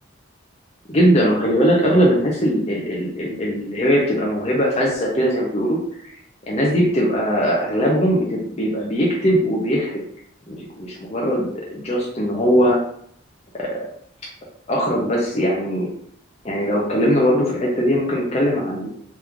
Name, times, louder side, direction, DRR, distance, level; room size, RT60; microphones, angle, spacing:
voice 1, 0.9-5.8 6.5-10.0 10.5-11.4 11.7-12.8 13.6-13.8 14.7-15.9 16.4-18.9, equal, 30° left, -3 dB, 0.5 m, -20 dB
3.1 x 2.3 x 3.5 m, 0.65 s
head